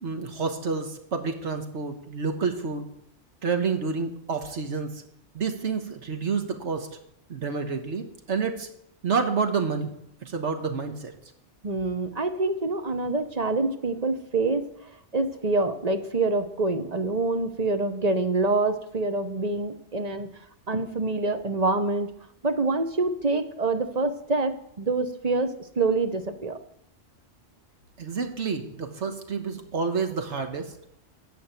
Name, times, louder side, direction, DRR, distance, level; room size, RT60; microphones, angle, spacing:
voice 1, 0.0-2.9 3.4-5.0 5.3-7.0 7.3-8.7 9.0-11.1 28.0-30.8, right 5 dB, 70° right, 6 dB, 1.7 m, -29 dB
voice 2, 11.6-14.7 15.1-20.3 20.7-22.1 22.4-26.6, right 3 dB, 35° right, 8 dB, 1.1 m, -26 dB
14.0 x 5.2 x 9.1 m, 0.72 s
omnidirectional pair, 1.2 m